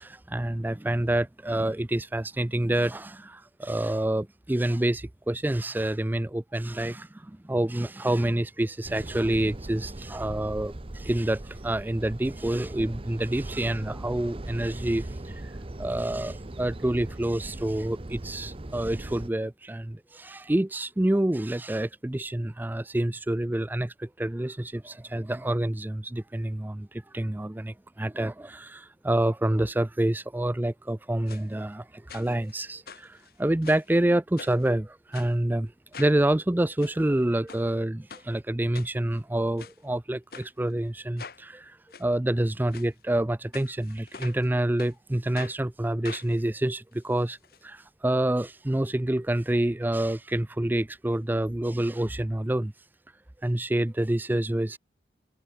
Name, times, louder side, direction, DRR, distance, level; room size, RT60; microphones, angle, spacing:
voice 1, 0.0-15.5 15.8-35.7 36.0-47.4 47.6-52.7 53.4-54.8, right 1 dB, 10° right, 0.4 m, -27 dB
sound 1, 8.8-19.3, right 1 dB, 30° right, 0.8 m, -39 dB
sound 2, 31.3-31.4 32.1-32.5 32.9-33.9 34.4-34.7 35.1-35.3 35.9-36.2 36.6-36.9 37.5-37.7 38.1-38.3 38.7-39.2 39.6-39.8 40.3-40.5 41.2-41.4 41.9-42.1 42.7-42.9 43.5-44.5 44.8-44.9 45.4-45.6 46.0-47.6 47.9-48.0 48.2-48.3, left 6 dB, 60° left, 1.2 m, -44 dB
head